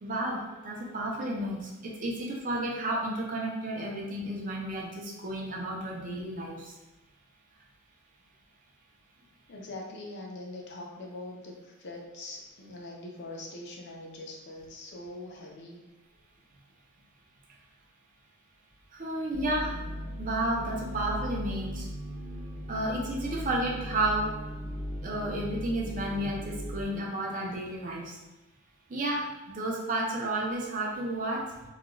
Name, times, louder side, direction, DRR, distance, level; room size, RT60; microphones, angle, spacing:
voice 1, 0.0-6.6 18.9-19.8 20.2-21.9 22.7-24.3 25.0-28.1 28.9-31.4, right 1 dB, 40° right, -2 dB, 0.5 m, -32 dB
voice 2, 9.5-15.8, left 2 dB, 55° left, -1 dB, 0.5 m, -42 dB
sound 1, 19.3-26.8, equal, 10° left, 0.6 m, -38 dB
2.4 x 2.2 x 3.0 m, 1.0 s
head